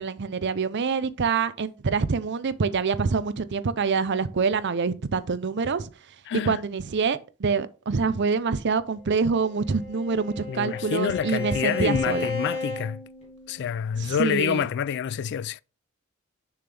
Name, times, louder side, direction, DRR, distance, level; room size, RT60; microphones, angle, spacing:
voice 1, 0.0-5.9 6.4-12.3 14.0-14.6, right 5 dB, 55° right, 0.6 m, -26 dB
voice 2, 6.3-6.6 10.5-13.0 13.5-15.6, left 8 dB, 55° left, 0.3 m, -27 dB
Bowed string instrument, 9.3-13.8, left 3 dB, 30° left, 2.6 m, -34 dB
6.8 x 6.0 x 3.4 m
head